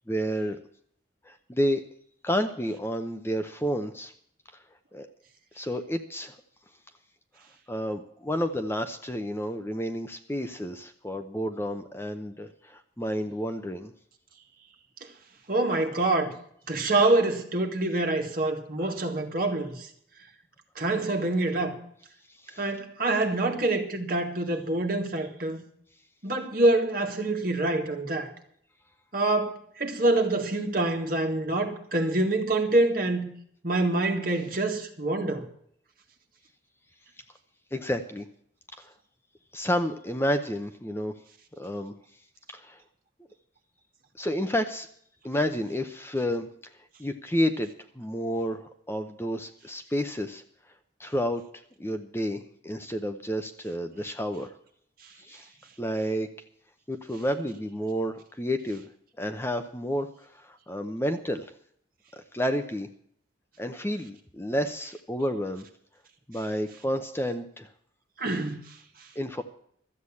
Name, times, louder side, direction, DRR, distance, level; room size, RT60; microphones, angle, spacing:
voice 1, 0.1-0.6 1.2-1.8 2.2-4.1 4.9-5.1 5.5-6.4 7.7-13.9 18.8-18.9 22.4-22.7 37.7-38.3 38.8-38.9 39.5-41.1 41.6-41.9 42.5-42.8 44.2-44.9 45.2-46.5 47.0-47.7 48.0-50.4 51.0-51.4 51.8-54.5 55.2-55.5 55.8-56.3 56.9-58.9 59.2-61.5 62.1-62.9 63.6-65.7 66.3-67.7 69.2-69.4, equal, 15° left, 0.7 m, -30 dB
voice 2, 15.5-16.3 16.7-19.9 20.8-21.8 22.6-25.6 26.2-28.3 29.1-33.3 33.6-35.5 68.2-68.6, right 2 dB, 50° right, 1.9 m, -26 dB
13.0 x 8.1 x 8.4 m
head